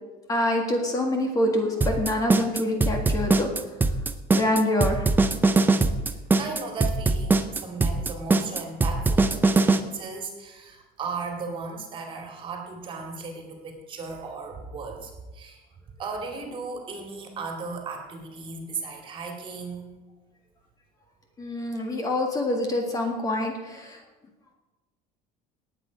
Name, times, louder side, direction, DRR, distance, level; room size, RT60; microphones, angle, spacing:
voice 1, 0.3-3.5 4.3-5.1 21.4-24.0, left 1 dB, 20° left, 2 dB, 1.8 m, -26 dB
sound 1, 1.8-9.8, right 3 dB, 10° right, 0.6 m, -21 dB
voice 2, 6.1-15.6 16.0-20.0 21.7-21.8, right 4 dB, 30° right, 3 dB, 2.3 m, -36 dB
18.5 x 8.4 x 5.2 m, 1.2 s
cardioid pair, 170°, 17 cm